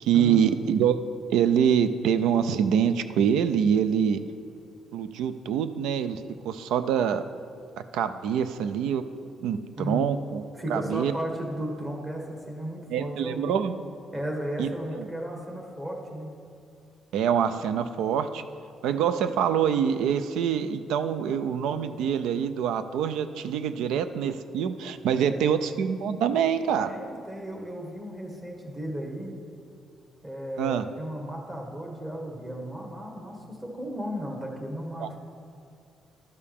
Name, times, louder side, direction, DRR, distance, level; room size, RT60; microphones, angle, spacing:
voice 1, 0.0-1.0 1.3-4.2 4.9-6.2 6.5-7.2 7.9-9.0 9.4-10.4 10.7-11.1 12.9-13.8 14.6-14.7 17.1-18.4 18.8-26.9 30.6-30.8 35.0-35.1, right 8 dB, 85° right, 11 dB, 0.3 m, -25 dB
voice 2, 10.6-13.6 14.1-16.3 25.1-25.6 26.8-29.3 30.2-35.2, equal, 25° right, 0 dB, 1.7 m, -35 dB
12.0 x 6.6 x 3.6 m, 2.4 s
cardioid pair, 90°, 0 cm